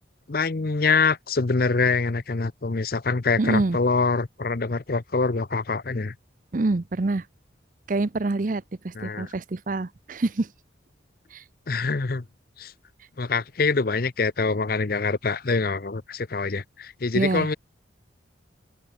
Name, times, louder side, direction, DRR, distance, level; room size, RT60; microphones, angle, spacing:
voice 1, 0.3-6.1 9.0-9.3 11.7-12.2 12.6-12.7 13.2-17.6, left 4 dB, 50° left, 0.7 m, -25 dB
voice 2, 3.4-3.8 6.5-7.2 7.9-10.5 11.3-11.4 17.1-17.5, right 2 dB, 45° right, 0.6 m, -26 dB
open air
head